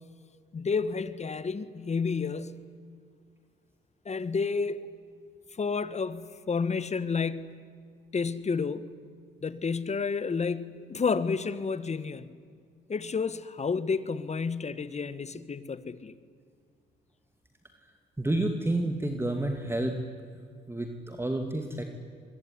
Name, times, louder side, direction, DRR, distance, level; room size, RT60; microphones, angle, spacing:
voice 1, 0.5-2.7 4.0-4.8 5.6-7.6 8.1-8.9 9.4-12.4 12.9-16.1, left 5 dB, 35° left, 1.5 m, -30 dB
voice 2, 18.2-20.0 20.7-21.8, right 1 dB, 10° right, 2.6 m, -29 dB
25.0 x 23.0 x 9.8 m
cardioid pair, 90°, 20 cm